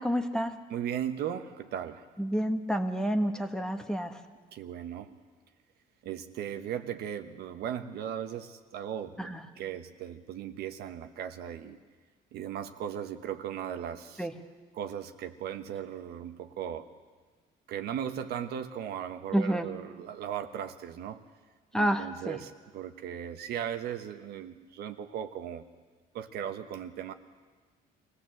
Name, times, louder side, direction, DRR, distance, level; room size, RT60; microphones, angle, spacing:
voice 1, 0.0-0.5 2.2-4.2 9.2-9.4 14.2-14.3 19.3-19.7 21.7-22.4, equal, 5° left, 6 dB, 1.4 m, -29 dB
voice 2, 0.7-2.1 4.5-5.1 6.0-11.8 12.3-14.3 14.7-16.9 17.7-21.2 21.7-25.7 26.1-27.1, right 9 dB, 70° right, 7 dB, 1.3 m, -37 dB
24.5 x 17.0 x 7.8 m, 1.4 s
cardioid pair, 110°, 17 cm